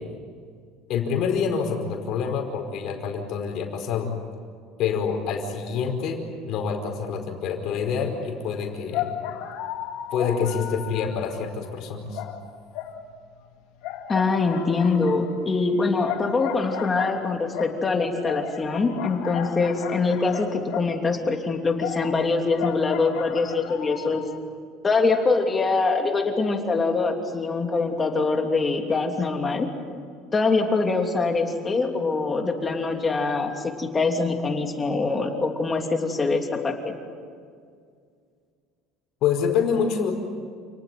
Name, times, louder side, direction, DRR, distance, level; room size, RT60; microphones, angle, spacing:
voice 1, 0.9-4.1 4.8-9.2 10.1-12.2 39.2-40.1, left 6 dB, 50° left, 3 dB, 4.9 m, -26 dB
sound 1, 8.9-11.8 12.1-13.4 13.8-21.2 21.8-24.4, left 10 dB, 70° left, 2.8 m, -35 dB
voice 2, 14.1-24.2 24.8-29.7 30.3-36.9, left 3 dB, 20° left, 3 dB, 2.9 m, -24 dB
29.0 x 19.0 x 9.5 m, 2.1 s
cardioid pair, 150°, 0 cm